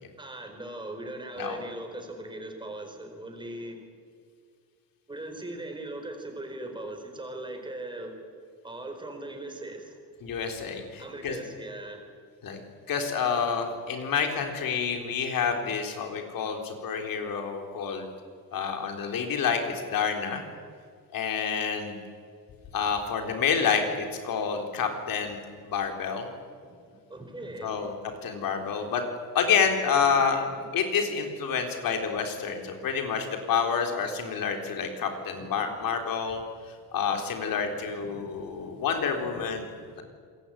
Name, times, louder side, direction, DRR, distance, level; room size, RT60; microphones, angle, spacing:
voice 1, 0.2-3.8 5.1-8.1 8.6-10.0 11.0-12.0 26.6-27.9 30.5-30.6 32.7-32.8 35.4-35.5 37.7-38.7 39.2-39.4 39.7-40.0, right 1 dB, 15° right, 4 dB, 4.5 m, -40 dB
voice 2, 10.2-11.4 12.4-12.6 12.9-18.1 18.5-20.4 21.1-22.0 22.7-26.3 27.6-27.9 28.2-29.0 29.3-30.5 30.7-36.4 36.9-39.6 40.0-40.1, left 6 dB, 75° left, 4 dB, 4.1 m, -28 dB
27.5 x 21.5 x 9.0 m, 2.1 s
cardioid pair, 160°, 35 cm